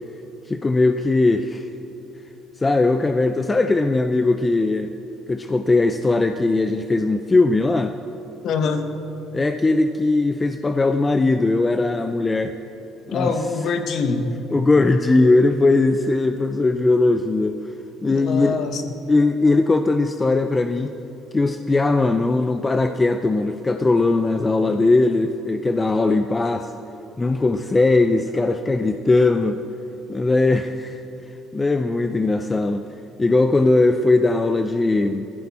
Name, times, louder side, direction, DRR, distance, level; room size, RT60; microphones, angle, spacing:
voice 1, 0.5-1.7 2.6-4.9 5.3-8.0 9.3-12.5 13.1-13.3 14.5-17.6 18.0-18.6 19.1-21.0 21.3-26.7 27.2-29.6 30.1-31.0 31.5-32.9 33.2-35.3, left 3 dB, 10° left, 8 dB, 0.4 m, -19 dB
voice 2, 8.4-8.8 13.1-14.3 18.1-18.9, left 4 dB, 40° left, 7 dB, 1.2 m, -24 dB
19.5 x 15.0 x 4.2 m, 3.0 s
cardioid pair, 180°, 0 cm